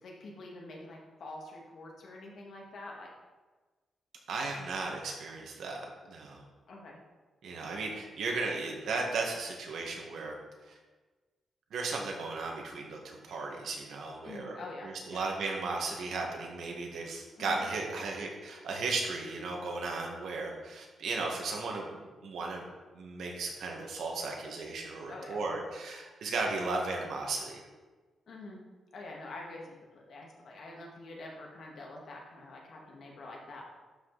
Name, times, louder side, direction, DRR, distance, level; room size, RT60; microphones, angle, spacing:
voice 1, 0.0-3.1 6.7-7.0 14.2-15.2 17.4-17.6 25.1-25.5 28.3-28.6 28.9-33.6, left 2 dB, 55° left, -1 dB, 1.9 m, -46 dB
voice 2, 4.3-6.5 7.4-10.3 10.7-10.8 11.7-22.6 22.9-27.6, right 3 dB, 75° right, 0 dB, 1.7 m, -35 dB
12.0 x 5.2 x 4.1 m, 1.3 s
wide cardioid pair, 180°, 0 cm